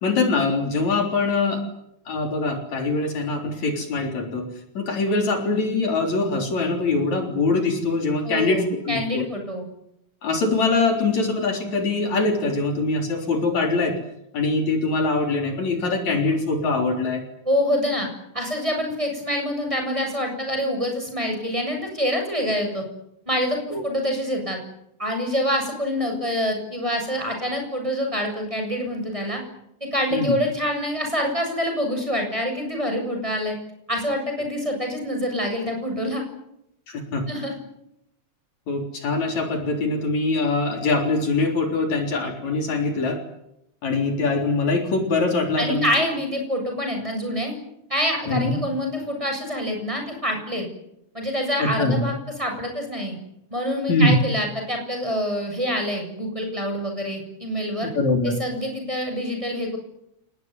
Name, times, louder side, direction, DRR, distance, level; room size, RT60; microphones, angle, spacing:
voice 1, 0.0-1.6 2.1-4.5 4.7-9.2 10.2-14.0 14.3-17.2 23.7-23.8 30.1-30.4 36.9-37.3 38.7-43.2 43.8-46.1 48.3-48.5 51.6-52.0 53.9-54.1 57.8-58.4, left 3 dB, 65° left, 4 dB, 5.0 m, -23 dB
voice 2, 8.2-9.6 17.5-18.1 18.3-22.8 23.3-24.6 25.0-29.4 29.9-33.6 33.9-36.2 37.3-37.5 45.6-47.5 47.9-50.7 51.1-53.2 53.5-57.9 58.2-59.8, equal, 10° right, 3 dB, 7.5 m, -26 dB
29.5 x 19.5 x 9.7 m, 0.81 s
omnidirectional pair, 3.4 m